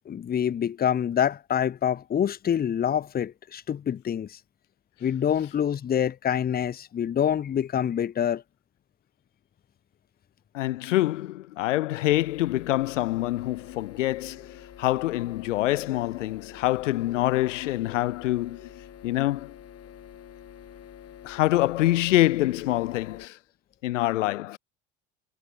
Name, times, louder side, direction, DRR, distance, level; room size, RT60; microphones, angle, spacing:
voice 1, 0.1-4.4 5.0-8.4, left 9 dB, 25° left, 0.7 m, -26 dB
voice 2, 10.5-18.7 19.0-19.5 21.2-23.4 23.8-24.6, left 16 dB, 90° left, 0.6 m, -25 dB
sound 1, 12.1-23.3, left 10 dB, 40° left, 3.4 m, -47 dB
hypercardioid pair, 75°, 36 cm